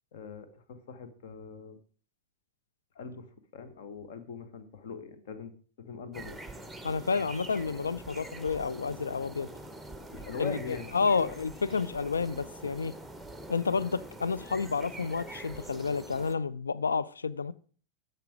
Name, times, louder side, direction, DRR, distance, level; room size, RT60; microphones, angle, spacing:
voice 1, 0.1-1.8 2.9-6.4 10.1-10.9 11.1-11.3, left 5 dB, 55° left, 1.2 m, -41 dB
sound 1, 6.1-16.4, right 1 dB, ahead, 0.9 m, -45 dB
voice 2, 6.8-9.5 10.4-12.9 13.5-17.5, left 5 dB, 75° left, 0.4 m, -30 dB
10.5 x 6.8 x 4.7 m
figure-of-eight pair, 90°, 0 cm